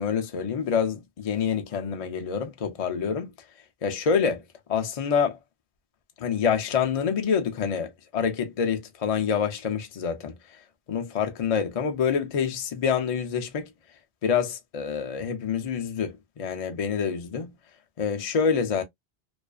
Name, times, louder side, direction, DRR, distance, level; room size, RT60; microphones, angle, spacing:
voice 1, 0.0-3.3 3.8-4.4 4.7-5.4 6.2-10.3 10.9-13.7 14.2-17.5 18.0-18.8, left 6 dB, 50° left, 0.4 m, -26 dB
2.4 x 2.3 x 2.3 m
omnidirectional pair, 1.1 m